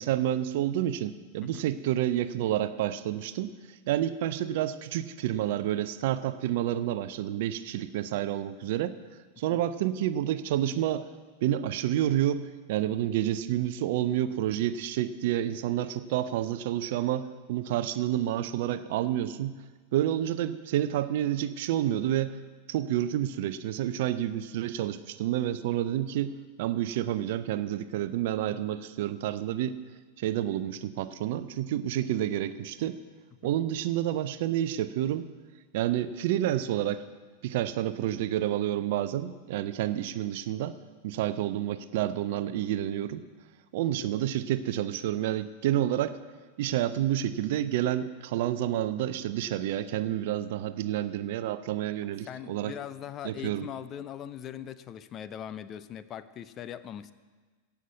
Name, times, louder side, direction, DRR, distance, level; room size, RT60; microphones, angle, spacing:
voice 1, 0.0-3.5 3.9-9.0 9.4-11.1 11.4-19.5 19.9-22.4 22.7-29.8 30.2-33.0 33.4-35.3 35.7-37.0 37.4-40.8 41.0-43.2 43.7-46.2 46.6-52.7 53.2-53.7, right 12 dB, 50° right, 13 dB, 0.6 m, -29 dB
voice 2, 52.0-57.1, left 10 dB, 30° left, 14 dB, 0.5 m, -41 dB
15.5 x 5.9 x 8.1 m, 1.4 s
figure-of-eight pair, 90°, 0 cm